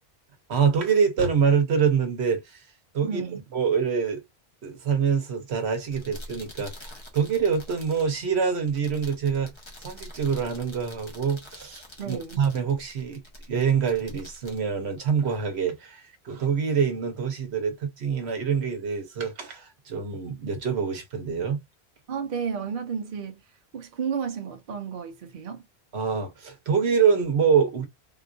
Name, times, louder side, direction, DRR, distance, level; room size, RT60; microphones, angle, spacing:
voice 1, 0.5-2.7 2.9-3.2 3.5-4.2 4.6-21.6 25.9-27.9, right 6 dB, 80° right, 1.1 m, -25 dB
voice 2, 3.0-3.4 12.0-12.4 22.1-23.4 23.7-25.6, right 7 dB, 55° right, 0.9 m, -32 dB
sound 1, 5.8-15.6, left 1 dB, 30° left, 1.0 m, -46 dB
3.7 x 2.4 x 2.4 m
omnidirectional pair, 1.1 m